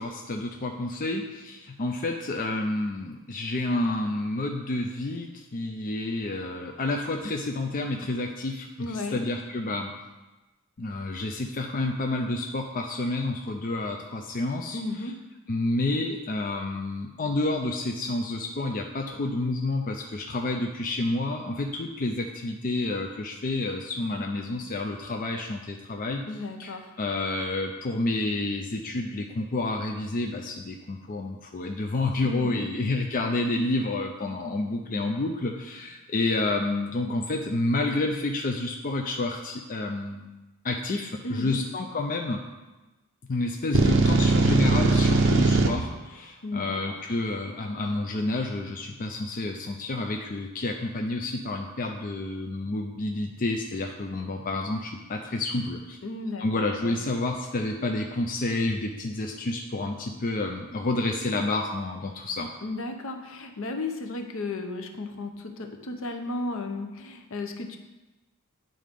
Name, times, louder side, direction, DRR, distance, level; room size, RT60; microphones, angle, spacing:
voice 1, 0.0-9.9 10.8-14.8 15.5-26.2 26.6-40.3 40.6-42.4 43.3-56.0 56.4-62.5, left 2 dB, 40° left, 2 dB, 0.5 m, -29 dB
voice 2, 8.8-9.2 14.7-15.1 26.3-26.9 32.2-32.7 41.2-41.6 46.4-47.0 56.0-56.5 56.8-57.0 62.6-67.8, left 2 dB, 65° left, 5 dB, 0.8 m, -34 dB
sound 1, 43.7-45.7, right 3 dB, 60° right, 0.8 m, -20 dB
9.2 x 3.8 x 5.2 m, 1.1 s
head